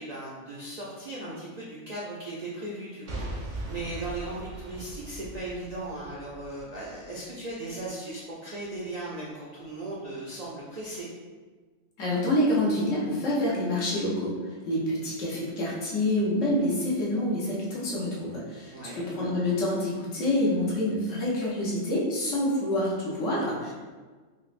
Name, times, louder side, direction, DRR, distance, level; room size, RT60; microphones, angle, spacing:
voice 1, 0.0-3.2 3.7-11.1 18.7-19.1, right 2 dB, 60° right, -6 dB, 0.4 m, -37 dB
Boom / Shatter / Crushing, 3.1-7.1 7.6-7.7, right 2 dB, 85° right, 1.1 m, -39 dB
voice 2, 12.0-14.3 14.6-23.7, left 1 dB, 80° left, -5 dB, 1.2 m, -27 dB
4.5 x 2.0 x 2.4 m, 1.4 s
omnidirectional pair, 1.3 m